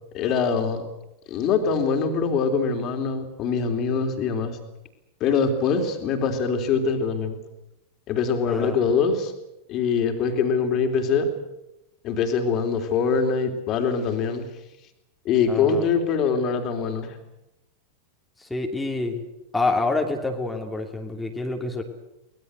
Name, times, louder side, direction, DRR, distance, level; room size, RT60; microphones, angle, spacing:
voice 1, 0.1-0.8 1.3-4.6 5.2-7.4 8.1-9.3 9.7-11.3 12.0-14.5 15.3-17.2, left 5 dB, 35° left, 5 dB, 3.6 m, -23 dB
voice 2, 15.5-15.8 18.4-19.2 19.5-21.8, left 3 dB, 5° left, 2 dB, 2.8 m, -27 dB
24.0 x 20.0 x 8.1 m, 0.91 s
figure-of-eight pair, 90°, 0 cm